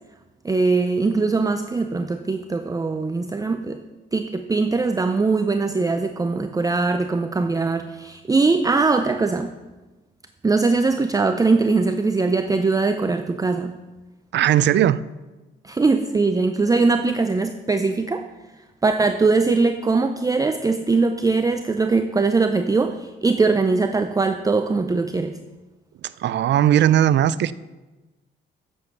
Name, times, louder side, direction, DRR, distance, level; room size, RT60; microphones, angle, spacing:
voice 1, 0.4-3.8 4.1-9.5 10.4-13.8 15.6-18.3 18.8-25.4, right 3 dB, 15° right, 0.6 m, -21 dB
voice 2, 14.3-15.0 26.2-27.5, right 11 dB, 65° right, 0.5 m, -18 dB
9.4 x 7.3 x 7.0 m
cardioid pair, 90°, 20 cm